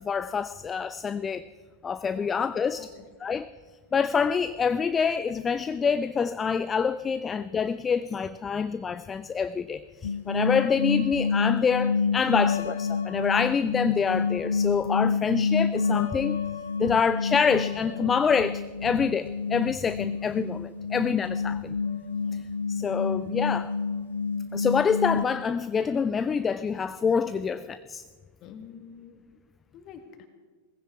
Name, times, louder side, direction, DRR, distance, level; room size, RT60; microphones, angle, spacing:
voice 1, 0.0-1.4 1.8-2.9 3.2-3.5 3.9-16.4 16.8-21.7 22.7-23.7 24.5-28.0, left 6 dB, 20° left, 14 dB, 0.4 m, -26 dB
sound 1, 10.0-25.2, left 5 dB, 65° left, 1.0 m, -28 dB
voice 2, 16.8-17.2 27.4-27.5 28.4-29.2 29.7-30.3, left 8 dB, 35° left, 7 dB, 1.9 m, -47 dB
18.5 x 15.5 x 4.7 m, 1.5 s
figure-of-eight pair, 90°, 0 cm